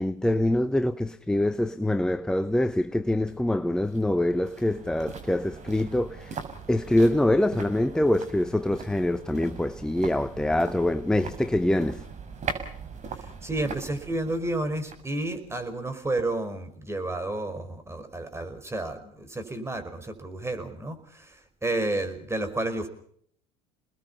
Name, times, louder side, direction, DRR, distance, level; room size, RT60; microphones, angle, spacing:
voice 1, 0.0-6.4 6.7-12.0, left 1 dB, 5° left, 0.9 m, -25 dB
sound 1, 3.3-16.4 16.7-16.8, right 5 dB, 40° right, 6.1 m, -41 dB
voice 2, 13.1-22.9, right 2 dB, 15° right, 5.2 m, -31 dB
29.5 x 20.5 x 5.6 m
hypercardioid pair, 80°, 19 cm